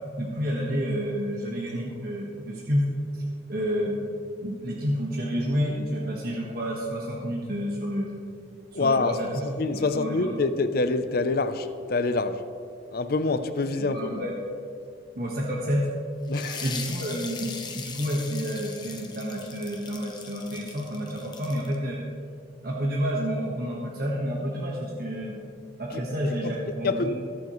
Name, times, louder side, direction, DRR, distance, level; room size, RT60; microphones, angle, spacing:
voice 1, 0.2-2.8 3.1-3.2 3.5-3.9 4.4-8.1 8.7-9.4 9.7-10.3 13.7-14.3 15.1-15.9 16.6-22.0 22.6-25.4 25.8-27.1, equal, 50° right, 1.4 m, -29 dB
voice 2, 8.7-9.2 9.6-12.4 12.9-14.2 16.3-16.7 25.9-26.5 26.8-27.1, left 3 dB, 55° left, 0.6 m, -26 dB
sound 1, 16.3-21.8, left 5 dB, 25° left, 1.0 m, -39 dB
21.0 x 7.1 x 3.1 m
head